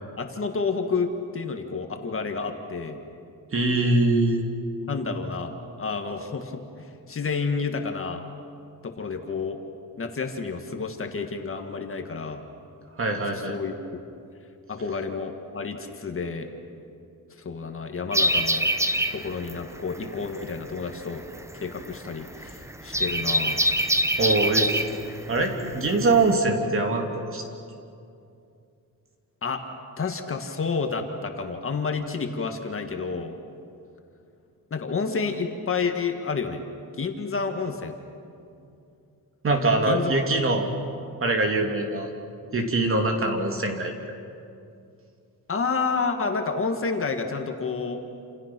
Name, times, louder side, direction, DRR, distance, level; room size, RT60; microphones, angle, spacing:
voice 1, 0.2-3.0 4.9-5.5 5.8-8.2 8.8-9.6 10.0-12.5 13.3-13.7 14.7-16.5 17.4-18.7 19.1-21.2 21.6-23.6 29.4-29.6 30.0-33.4 34.7-36.6 37.0-37.9 39.9-40.3 45.5-48.0, left 4 dB, 35° left, 5 dB, 1.8 m, -30 dB
voice 2, 3.5-4.4 13.0-13.6 24.2-24.8 25.3-27.4 39.4-40.7 41.2-42.1 42.5-43.9, right 2 dB, 35° right, 3 dB, 3.0 m, -23 dB
sound 1, 18.1-26.3, right 1 dB, 10° right, 0.8 m, -25 dB
29.5 x 28.5 x 6.1 m, 2.6 s
wide cardioid pair, 160°, 36 cm